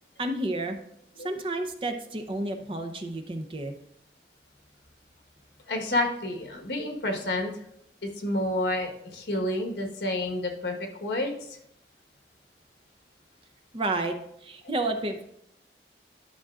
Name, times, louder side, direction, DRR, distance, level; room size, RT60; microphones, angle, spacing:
voice 1, 0.2-0.8 1.2-3.7 13.7-14.2 14.4-15.4, right 2 dB, 30° right, 5 dB, 0.6 m, -31 dB
voice 2, 5.7-7.5 8.0-11.5, left 1 dB, 75° left, 2 dB, 1.3 m, -29 dB
11.5 x 6.0 x 2.4 m, 0.75 s
head